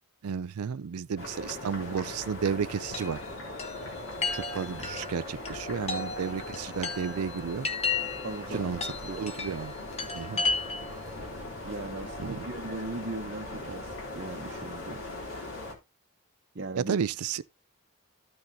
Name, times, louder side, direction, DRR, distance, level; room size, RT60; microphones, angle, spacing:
voice 1, 0.2-3.2 4.3-7.7 8.5-9.7 10.1-10.4 12.2-12.4 16.8-17.4, right 6 dB, 85° right, 0.4 m, -32 dB
sound 1, 1.2-15.7, left 2 dB, 65° left, 3.5 m, -40 dB
Chime, 2.9-11.0, left 4 dB, 30° left, 1.4 m, -35 dB
voice 2, 8.2-8.7 9.1-9.3 11.6-15.0 16.5-17.0, right 2 dB, 50° right, 0.9 m, -38 dB
14.0 x 6.2 x 2.7 m
head